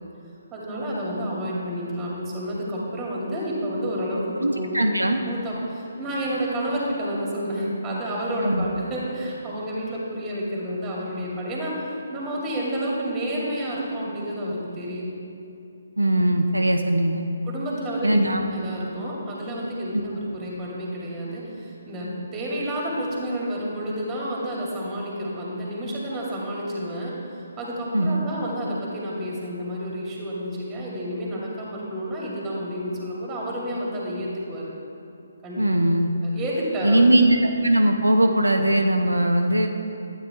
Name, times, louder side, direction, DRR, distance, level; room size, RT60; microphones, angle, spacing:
voice 1, 0.5-5.0 5.3-15.1 17.4-18.2 18.5-27.1 27.6-34.7 35.4-35.9 36.2-37.0, equal, 15° right, -4 dB, 2.2 m, -30 dB
voice 2, 4.4-5.2 8.4-8.7 16.0-17.2 18.0-18.4 19.6-20.0 27.9-28.2 35.6-36.1 36.8-37.4 37.6-39.7, right 1 dB, 85° right, 4 dB, 0.7 m, -20 dB
12.0 x 9.0 x 3.5 m, 2.7 s
figure-of-eight pair, 140°, 0 cm